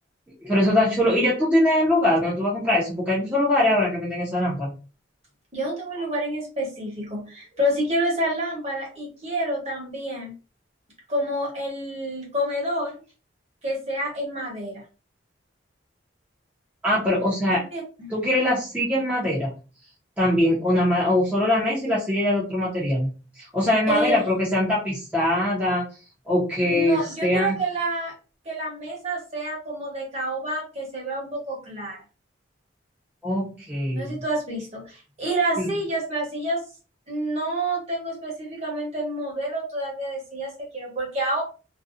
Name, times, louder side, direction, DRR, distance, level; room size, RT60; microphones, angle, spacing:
voice 1, 0.4-4.7 16.8-17.6 18.1-19.5 20.2-23.1 23.4-25.8 26.3-27.5 33.2-34.1 35.6-35.7, left 1 dB, 10° right, -8 dB, 0.7 m, -22 dB
voice 2, 5.5-10.3 11.1-13.0 13.6-14.8 17.5-18.1 23.9-24.4 26.6-28.1 28.4-32.0 33.9-36.6 37.1-41.4, right 1 dB, 35° right, -2 dB, 1.1 m, -28 dB
2.6 x 2.2 x 2.4 m, 0.34 s
head